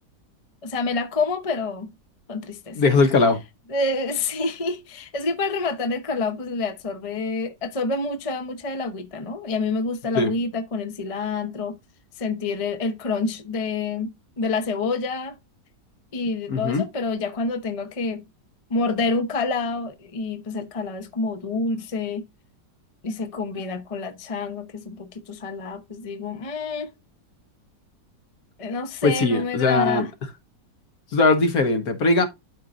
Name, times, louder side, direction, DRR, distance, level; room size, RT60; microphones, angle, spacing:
voice 1, 0.6-1.9 2.3-2.8 3.7-11.8 12.2-15.4 16.1-18.2 18.7-22.3 23.0-26.9 28.6-30.1, left 3 dB, 30° left, 0.7 m, -28 dB
voice 2, 2.7-3.4 10.1-10.3 16.5-16.8 29.0-30.1 31.1-32.3, left 3 dB, 60° left, 1.6 m, -19 dB
12.0 x 4.7 x 2.5 m
omnidirectional pair, 1.9 m